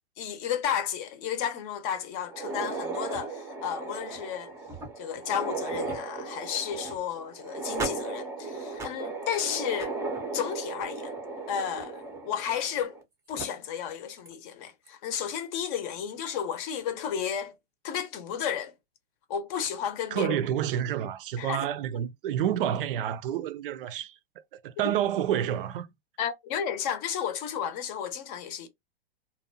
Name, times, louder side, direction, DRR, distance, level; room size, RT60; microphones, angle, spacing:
voice 1, 0.2-4.5 5.0-9.9 10.3-11.1 11.5-13.0 13.3-17.5 17.8-18.7 19.3-20.4 21.4-21.6 26.2-28.7, left 8 dB, 40° left, 0.7 m, -32 dB
sound 1, 2.2-13.0 13.4-13.5 14.3-14.4 14.9-15.0 16.3-16.6, right 3 dB, 10° right, 0.6 m, -36 dB
voice 2, 20.1-24.1 24.5-25.9, right 10 dB, 60° right, 0.5 m, -29 dB
2.5 x 2.2 x 2.6 m
hypercardioid pair, 135°, 31 cm